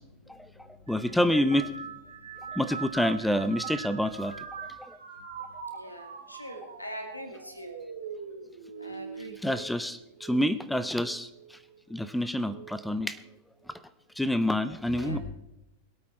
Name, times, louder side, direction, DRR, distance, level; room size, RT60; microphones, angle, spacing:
voice 1, 0.0-1.2 2.1-2.6 3.8-4.2 4.5-4.7 5.2-7.7 8.8-9.4 14.9-15.2, equal, 85° left, 6 dB, 2.4 m, -44 dB
voice 2, 0.9-1.7 2.6-4.3 9.4-11.3 11.9-13.2 14.2-15.2, left 1 dB, 5° left, 13 dB, 0.7 m, -27 dB
sound 1, 0.9-10.5 10.9-11.5 12.5-12.8, right 6 dB, 70° right, 2.3 m, -42 dB
22.0 x 8.6 x 4.5 m, 0.91 s
figure-of-eight pair, 90°, 0 cm